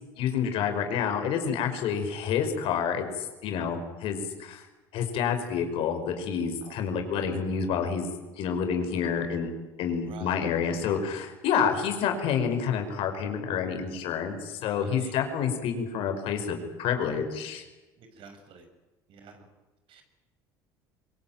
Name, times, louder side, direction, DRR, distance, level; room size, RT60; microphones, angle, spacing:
voice 1, 0.2-4.6 4.9-8.1 8.4-9.5 9.8-17.6, left 7 dB, 65° left, 6 dB, 5.2 m, -28 dB
voice 2, 18.2-18.6 19.1-19.5 19.9-20.0, right 6 dB, 60° right, 7 dB, 5.9 m, -48 dB
24.0 x 22.0 x 9.1 m, 1.1 s
supercardioid pair, 90°, 10 cm